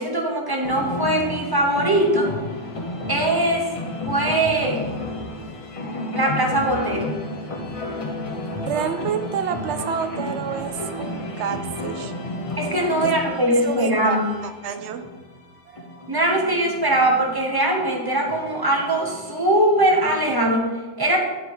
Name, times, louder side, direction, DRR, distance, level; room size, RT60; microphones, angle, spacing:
voice 1, 0.0-2.3 3.1-3.7 4.1-4.9 6.1-7.2 12.6-14.3 16.1-20.7 21.0-21.2, right 1 dB, 20° right, 0 dB, 1.0 m, -21 dB
sound 1, 0.6-20.5, left 1 dB, 35° left, 0.9 m, -32 dB
voice 2, 8.6-12.1 13.0-13.2 13.5-15.1 15.7-15.9, right 8 dB, 85° right, 10 dB, 0.9 m, -29 dB
9.5 x 3.5 x 4.6 m, 1.3 s
omnidirectional pair, 1.1 m